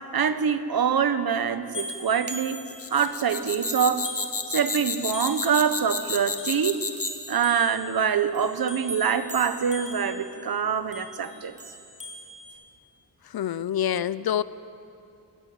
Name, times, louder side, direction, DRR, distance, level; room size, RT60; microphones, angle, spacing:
voice 1, 0.1-2.6 2.9-4.1 4.5-6.8 7.3-11.6, right 7 dB, 65° right, 10 dB, 1.4 m, -25 dB
sound 1, 1.7-3.2 3.5-10.4 10.9-12.5, right 1 dB, 20° right, 5.6 m, -40 dB
sound 2, 2.7-7.3, left 4 dB, 35° left, 2.0 m, -31 dB
voice 2, 13.3-14.4, left 10 dB, 65° left, 16 dB, 0.7 m, -26 dB
27.5 x 19.5 x 8.9 m, 2.6 s
wide cardioid pair, 135°, 39 cm